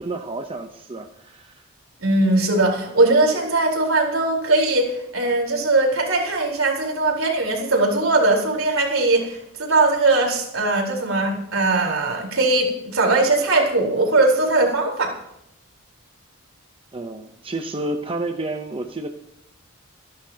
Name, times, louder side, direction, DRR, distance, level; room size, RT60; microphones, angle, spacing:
voice 1, 0.0-1.6 16.9-19.1, right 2 dB, 25° right, 5 dB, 0.8 m, -30 dB
voice 2, 2.0-15.1, right 2 dB, 70° right, 0 dB, 4.3 m, -20 dB
26.5 x 11.5 x 2.9 m, 0.78 s
head